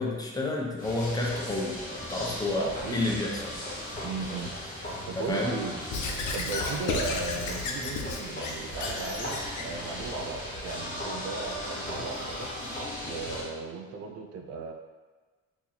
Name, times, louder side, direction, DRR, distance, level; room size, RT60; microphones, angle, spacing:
voice 1, 0.0-1.8 2.1-3.6 5.1-5.6, left 2 dB, 15° left, -2 dB, 0.7 m, -30 dB
sound 1, 0.8-13.5, left 1 dB, 30° left, 1.2 m, -37 dB
voice 2, 2.6-3.1 4.0-4.5 5.0-5.8 6.3-12.5 13.0-14.7, right 4 dB, 55° right, 3 dB, 0.5 m, -36 dB
Squeak / Writing, 5.9-9.7, left 4 dB, 80° left, 0.6 m, -33 dB
2.9 x 2.6 x 3.9 m, 1.4 s
cardioid pair, 90°, 30 cm